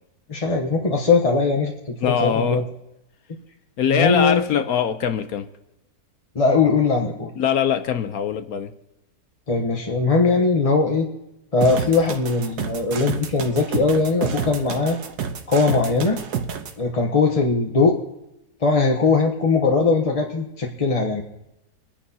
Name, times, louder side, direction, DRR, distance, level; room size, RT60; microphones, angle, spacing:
voice 1, 0.3-1.7 2.0-2.6 3.9-4.5 6.3-7.3 9.5-11.1 11.5-15.0 15.5-16.2 16.8-18.0 18.6-21.2, left 4 dB, 30° left, 1 dB, 0.8 m, -20 dB
voice 2, 2.0-2.6 3.8-5.5 7.4-8.7, left 8 dB, 65° left, 10 dB, 1.1 m, -22 dB
sound 1, 11.6-16.7, right 7 dB, 70° right, 1.4 m, -29 dB
27.0 x 10.0 x 2.8 m, 0.93 s
omnidirectional pair, 1.8 m